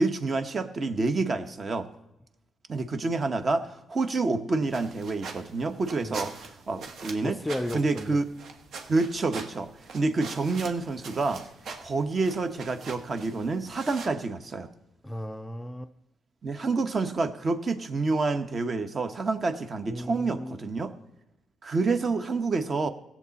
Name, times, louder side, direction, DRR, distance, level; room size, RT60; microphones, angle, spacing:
voice 1, 0.0-1.9 2.7-6.3 6.7-7.4 7.7-8.2 8.9-9.7 9.9-11.4 11.8-14.7 16.4-20.9 21.6-22.9, right 3 dB, 40° right, 1.0 m, -28 dB
sound 1, 4.6-14.1, right 4 dB, 65° right, 1.3 m, -43 dB
voice 2, 7.2-8.2 15.0-15.9 19.9-20.6, left 1 dB, 5° left, 0.4 m, -34 dB
16.5 x 7.3 x 4.1 m
cardioid pair, 90°, 0 cm